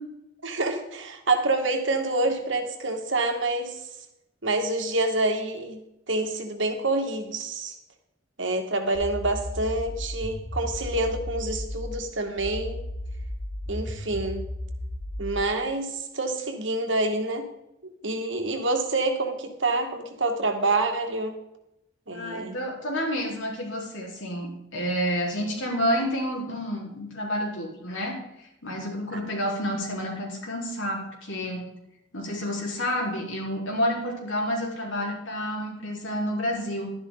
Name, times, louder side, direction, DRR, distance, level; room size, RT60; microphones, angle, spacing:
voice 1, 0.4-3.8 4.4-5.8 6.1-7.7 8.4-12.8 13.7-14.4 15.2-17.5 18.0-21.3 22.1-22.6 29.1-29.2, right 2 dB, 70° right, 5 dB, 2.0 m, -27 dB
sound 1, 8.9-12.0 12.4-15.4, left 1 dB, 50° left, 3.0 m, -34 dB
voice 2, 22.1-31.7 32.1-36.9, equal, 80° left, -2 dB, 4.3 m, -29 dB
12.5 x 11.0 x 4.0 m, 0.84 s
head